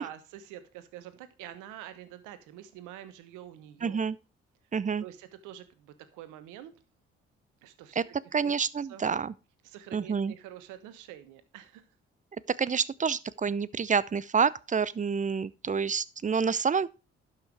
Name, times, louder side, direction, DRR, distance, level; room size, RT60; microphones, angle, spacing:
voice 1, 0.0-4.0 5.0-6.7 7.6-8.0 8.4-8.5 8.9-9.0 9.6-11.8, right 11 dB, 75° right, 1.2 m, -46 dB
voice 2, 3.8-4.2 4.7-5.0 8.0-8.1 8.3-9.3 9.9-10.3 12.5-16.9, right 6 dB, 25° right, 0.6 m, -28 dB
11.5 x 5.8 x 4.7 m
hypercardioid pair, 45°, 31 cm